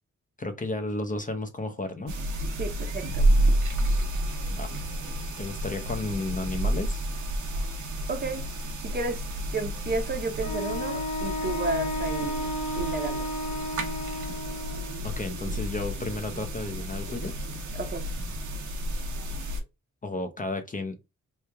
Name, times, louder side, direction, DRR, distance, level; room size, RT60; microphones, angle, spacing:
voice 1, 0.4-2.1 4.4-4.7 5.4-7.0 15.0-17.4 20.0-21.0, left 2 dB, 25° left, 0.6 m, -33 dB
sound 1, 2.1-19.6, right 1 dB, 80° right, 1.0 m, -30 dB
voice 2, 2.6-3.3 8.1-8.4 8.8-9.3 9.5-13.3 17.7-18.0, right 3 dB, 35° right, 0.7 m, -32 dB
Wind instrument woodwind instrument, 10.4-15.0, equal, 75° left, 1.2 m, -33 dB
3.1 x 2.3 x 3.3 m
wide cardioid pair, 105°, 29 cm